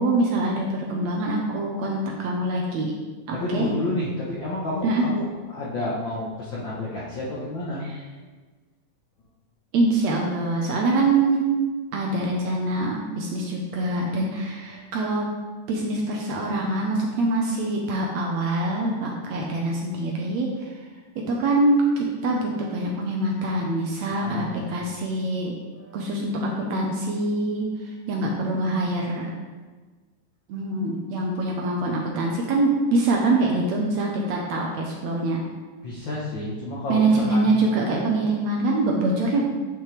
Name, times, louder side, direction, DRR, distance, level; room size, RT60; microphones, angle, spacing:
voice 1, 0.0-2.9 3.3-3.7 4.8-5.0 7.8-8.0 9.7-11.4 11.9-15.3 15.7-20.7 21.3-25.6 25.9-27.7 28.1-29.3 30.5-35.4 36.9-39.5, right 2 dB, 70° right, -1 dB, 1.8 m, -24 dB
voice 2, 3.3-5.3 5.5-7.8 14.7-14.9 24.2-24.7 25.7-26.1 35.8-37.4, left 1 dB, 65° left, -7 dB, 1.1 m, -30 dB
9.2 x 5.7 x 3.3 m, 1.3 s
omnidirectional pair, 3.7 m